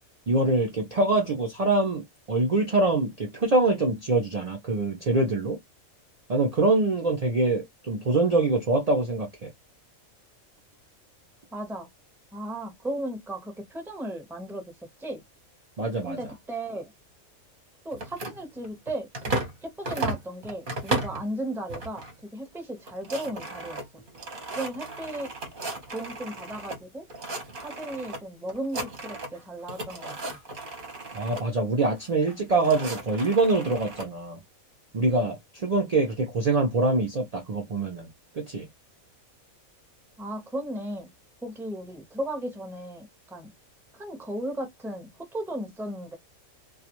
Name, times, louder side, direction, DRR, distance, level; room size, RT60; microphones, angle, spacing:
voice 1, 0.3-5.6 6.3-9.5 15.8-16.2 31.1-34.4 34.9-38.1 38.3-38.7, right 2 dB, 65° right, 0.4 m, -24 dB
voice 2, 11.5-11.9 12.3-14.6 15.0-15.2 16.0-16.9 17.8-22.0 22.3-24.0 24.5-25.3 25.9-27.0 27.6-30.4 40.2-41.1 41.4-43.5 43.9-46.2, right 1 dB, 5° right, 0.5 m, -35 dB
sound 1, 17.9-19.6 19.8-21.2 21.7-22.1 22.5-22.6 22.8-26.8 27.1-28.2 28.5-29.4 29.7-31.4 32.2-34.1, right 2 dB, 45° right, 0.8 m, -35 dB
2.3 x 2.3 x 2.9 m
omnidirectional pair, 1.5 m